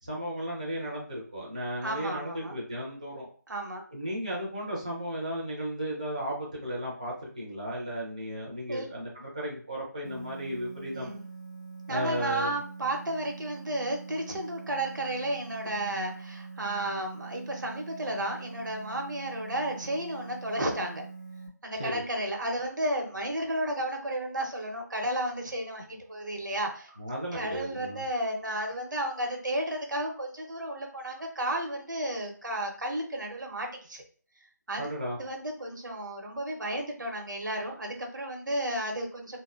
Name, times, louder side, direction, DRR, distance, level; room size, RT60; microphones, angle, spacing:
voice 1, 0.0-3.3 3.9-11.1 11.9-12.5 21.8-22.0 27.0-28.0 34.7-35.2, equal, 25° right, -5 dB, 0.4 m, -35 dB
voice 2, 1.8-2.6 3.5-3.8 8.7-8.9 10.9-11.2 11.9-21.0 21.6-26.9 27.3-34.0 34.7-39.4, right 1 dB, 85° right, 2 dB, 0.8 m, -33 dB
sound 1, 10.0-21.5, right 4 dB, 70° left, 0.5 m, -44 dB
2.6 x 2.1 x 2.3 m, 0.43 s
figure-of-eight pair, 180°, 10 cm